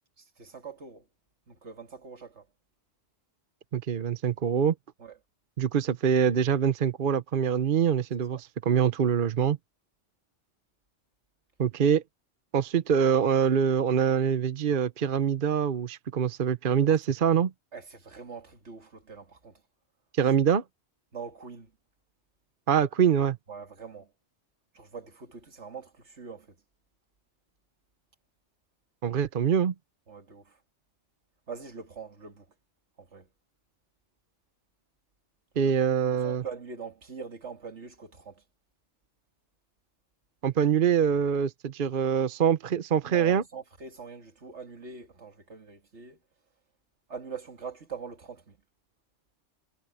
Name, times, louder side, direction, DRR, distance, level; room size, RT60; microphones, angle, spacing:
voice 1, 0.2-1.1 1.5-2.5 5.0-5.2 8.3-8.4 17.7-19.6 20.3-20.4 21.1-21.7 23.5-24.1 24.7-26.6 30.1-30.6 31.5-32.5 33.0-33.3 35.5-38.4 43.0-46.2 47.1-48.6, right 5 dB, 75° right, 2.4 m, -43 dB
voice 2, 3.7-4.7 5.6-9.6 11.6-12.0 12.5-17.5 20.1-20.6 22.7-23.4 29.0-29.7 35.6-36.4 40.4-43.4, right 8 dB, 50° right, 0.9 m, -24 dB
omnidirectional pair, 1.2 m